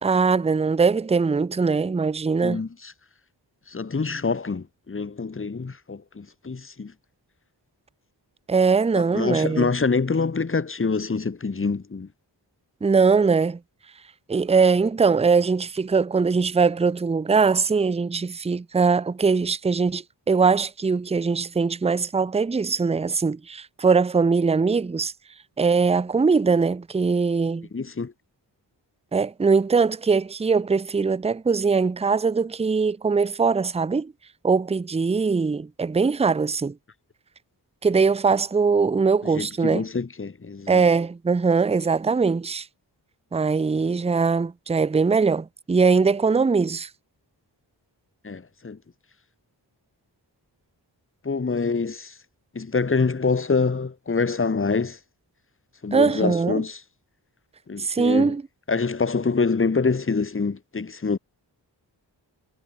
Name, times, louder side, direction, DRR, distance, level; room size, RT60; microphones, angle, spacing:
voice 1, 0.0-2.6 8.5-9.7 12.8-13.6 14.3-25.1 25.6-27.7 29.1-34.1 34.4-36.7 37.8-39.8 40.7-42.7 43.3-46.9 55.9-56.6 57.8-58.4, right 5 dB, 15° right, 0.5 m, -21 dB
voice 2, 2.4-2.9 3.7-6.9 8.9-12.1 27.7-28.1 39.3-40.8 48.2-48.8 51.2-52.1 52.5-55.0 55.8-56.8 57.7-58.3 58.7-61.2, left 4 dB, 30° left, 1.0 m, -26 dB
cardioid pair, 45°, 44 cm